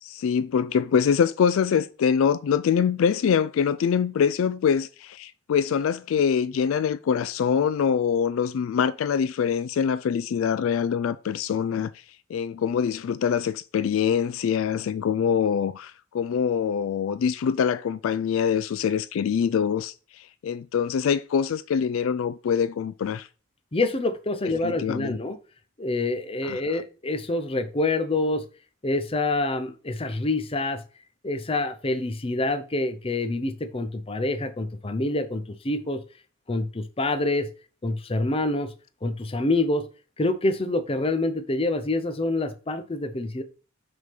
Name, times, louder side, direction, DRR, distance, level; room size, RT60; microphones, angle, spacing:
voice 1, 0.0-12.0 12.3-23.3 24.6-25.2 26.4-26.6, left 7 dB, 70° left, 0.3 m, -24 dB
voice 2, 23.7-25.4 25.8-28.4 28.8-30.8 31.2-36.0 36.5-37.5 37.8-38.7 39.0-39.9 40.2-43.4, left 2 dB, 25° left, 0.7 m, -26 dB
6.1 x 3.7 x 5.8 m
head